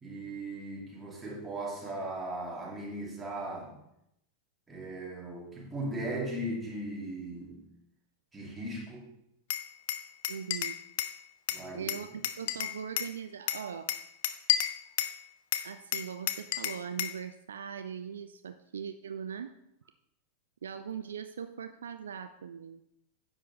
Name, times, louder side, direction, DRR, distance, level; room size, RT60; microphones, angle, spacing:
voice 1, 0.0-3.8 4.7-7.7 8.3-9.1 11.5-11.9 12.4-12.5, right 1 dB, 10° right, -3 dB, 2.4 m, -38 dB
Glass, 9.5-11.2 11.5-13.1 13.5-15.2 15.5-17.2, left 12 dB, 55° left, 0.5 m, -32 dB
voice 2, 10.3-10.8 11.7-13.9 15.6-19.5 20.6-22.8, right 7 dB, 65° right, 9 dB, 0.4 m, -40 dB
9.9 x 7.3 x 3.1 m, 0.80 s
figure-of-eight pair, 90°, 0 cm